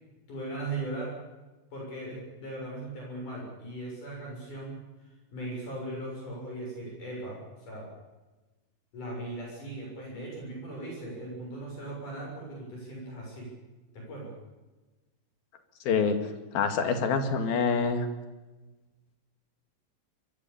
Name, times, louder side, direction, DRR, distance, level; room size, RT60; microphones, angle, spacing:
voice 1, 0.3-1.2 1.7-7.9 8.9-13.5 13.9-14.3, right 2 dB, 55° left, -1 dB, 8.5 m, -38 dB
voice 2, 15.9-16.2 16.5-18.1, left 5 dB, 75° left, 7 dB, 4.0 m, -26 dB
24.5 x 22.0 x 7.1 m, 1.1 s
omnidirectional pair, 4.3 m